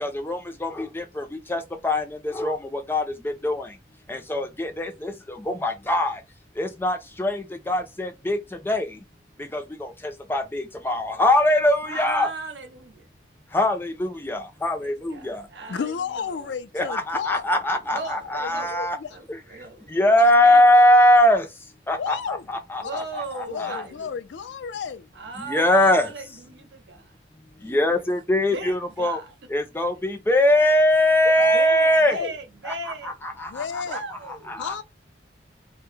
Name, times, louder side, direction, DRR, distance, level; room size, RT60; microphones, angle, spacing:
voice 1, 0.0-1.2 1.5-2.0 2.4-2.6 2.9-3.6 4.1-5.1 5.5-6.1 6.6-8.4 8.7-8.9 9.5-9.9 10.3-12.3 13.5-15.4 16.7-19.0 19.9-21.4 21.9-23.0 23.4-23.8 25.5-26.1 27.6-29.2 29.5-32.2 34.5-34.7, left 1 dB, 10° left, 0.4 m, -21 dB
voice 2, 11.8-13.1 14.8-16.5 17.7-18.7 19.1-20.6 22.8-24.1 25.1-27.1 28.5-29.3 31.5-33.1 33.8-34.7, right 3 dB, 75° right, 0.8 m, -37 dB
voice 3, 15.7-17.5 18.0-19.1 20.1-20.2 22.0-22.5 22.8-23.1 23.5-25.1 27.6-27.8 31.3-32.3 33.5-34.0 34.6-34.8, left 6 dB, 80° left, 0.4 m, -32 dB
2.2 x 2.1 x 3.0 m
head